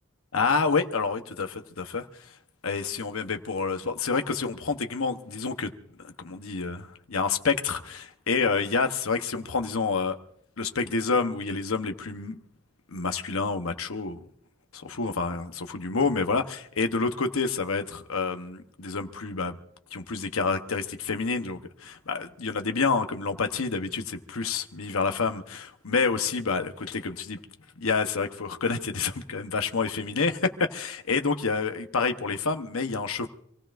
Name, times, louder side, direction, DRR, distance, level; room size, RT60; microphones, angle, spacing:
voice 1, 0.3-2.1 2.6-5.7 6.2-10.2 10.6-12.4 12.9-14.2 14.7-19.6 19.9-27.4 27.8-33.3, left 4 dB, 80° left, 7 dB, 1.0 m, -28 dB
26.5 x 16.5 x 2.5 m, 0.73 s
head